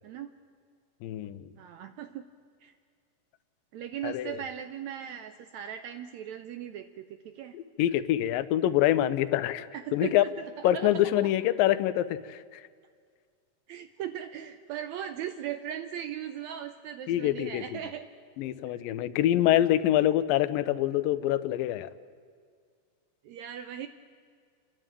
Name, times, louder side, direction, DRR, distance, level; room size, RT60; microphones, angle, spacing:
voice 1, 1.0-1.5 4.0-4.4 7.5-10.2 10.6-12.6 17.1-17.8 18.4-21.9, left 13 dB, 90° left, 13 dB, 2.4 m, -26 dB
voice 2, 1.6-2.3 2.6-2.7 3.7-7.6 9.7-10.9 11.2-11.3 13.7-18.1 18.7-18.8 23.2-23.9, right 10 dB, 80° right, 8 dB, 1.7 m, -38 dB
29.5 x 11.0 x 9.0 m, 2.1 s
omnidirectional pair, 3.9 m